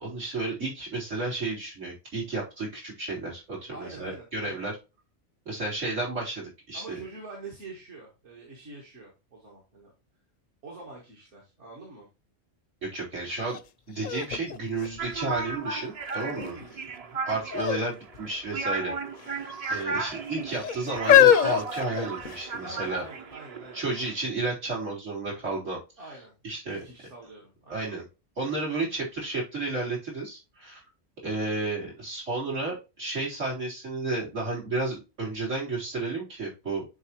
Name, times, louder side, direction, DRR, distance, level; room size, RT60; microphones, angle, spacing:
voice 1, 0.0-4.7 5.5-7.0 12.8-13.6 13.9-16.5 17.3-19.4 19.7-23.0 23.7-25.8 26.4-26.8 27.7-28.1 28.4-30.8 31.2-36.9, right 3 dB, 90° right, -4 dB, 3.9 m, -32 dB
voice 2, 3.7-4.7 6.7-9.9 10.6-12.1 16.3-17.3 22.6-24.1 26.0-26.3 26.6-27.9, right 3 dB, 70° right, -3 dB, 2.0 m, -45 dB
sound 1, 13.5-13.6 14.0-15.6 16.2-16.7 17.5-17.9 18.1-18.3 19.2-19.8 20.5-22.6 23.3-23.4, left 10 dB, 60° left, 0.5 m, -23 dB
sound 2, 15.0-24.1, right 4 dB, 40° right, 0.6 m, -35 dB
9.6 x 3.8 x 3.0 m, 0.28 s
omnidirectional pair, 1.2 m